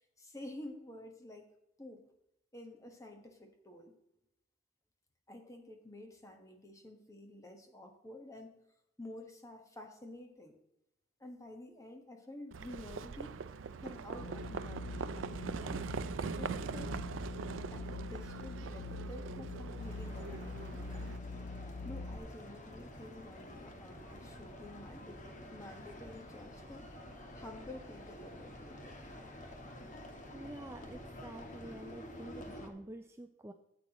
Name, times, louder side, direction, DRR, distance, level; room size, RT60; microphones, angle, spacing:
voice 1, 0.0-1.5 1.8-2.1 2.5-3.9 5.3-8.6 9.0-10.6 11.2-13.5 13.8-17.0 17.7-21.2 21.8-26.9 27.3-29.0, left 1 dB, 15° left, 4 dB, 1.3 m, -50 dB
Livestock farm animals working animals, 12.5-21.2, right 5 dB, 85° right, 0.4 m, -42 dB
sound 1, 14.1-22.2, left 2 dB, 60° left, 0.5 m, -44 dB
sound 2, 19.8-32.7, left 1 dB, 40° left, 1.4 m, -49 dB
voice 2, 30.2-33.5, right 1 dB, 15° right, 5 dB, 0.5 m, -48 dB
13.0 x 8.4 x 3.0 m, 0.86 s
head